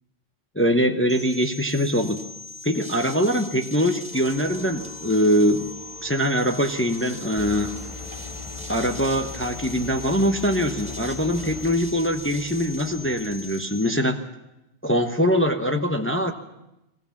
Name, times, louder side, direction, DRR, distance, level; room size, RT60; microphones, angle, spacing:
voice 1, 0.5-2.3 2.6-5.7 6.0-7.8 8.7-14.2 14.8-16.3, equal, 10° left, 5 dB, 0.9 m, -23 dB
sound 1, 1.1-14.0, left 3 dB, 5° right, 2.6 m, -40 dB
sound 2, 4.1-13.2, equal, 45° left, 5.7 m, -47 dB
sound 3, 7.4-11.8, left 4 dB, 30° left, 1.2 m, -39 dB
22.0 x 16.5 x 7.2 m, 0.92 s
omnidirectional pair, 1.2 m